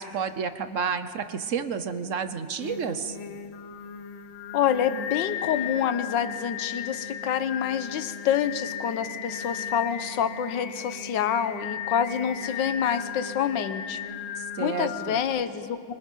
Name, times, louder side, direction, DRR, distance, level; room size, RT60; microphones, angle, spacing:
voice 1, 0.0-3.2 14.4-15.2, right 6 dB, 55° right, 11 dB, 0.8 m, -30 dB
Singing, 2.6-15.2, left 8 dB, 85° left, 1.8 m, -36 dB
voice 2, 4.5-14.0 14.6-15.9, left 8 dB, 65° left, 11 dB, 1.6 m, -27 dB
29.5 x 26.0 x 5.5 m, 2.1 s
omnidirectional pair, 2.3 m